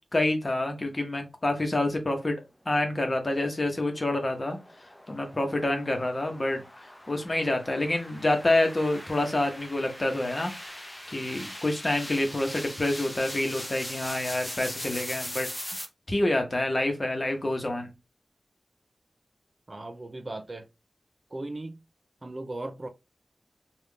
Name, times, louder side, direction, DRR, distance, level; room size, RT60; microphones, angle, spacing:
voice 1, 0.1-2.4 2.7-4.6 5.1-15.5 16.1-17.9, left 1 dB, 40° left, 1.0 m, -27 dB
sound 1, 3.9-15.9, left 1 dB, 15° left, 0.9 m, -41 dB
voice 2, 19.7-20.7 21.3-21.8 22.2-22.9, right 2 dB, 40° right, 0.5 m, -37 dB
3.5 x 2.5 x 3.4 m
wide cardioid pair, 60°, 0 cm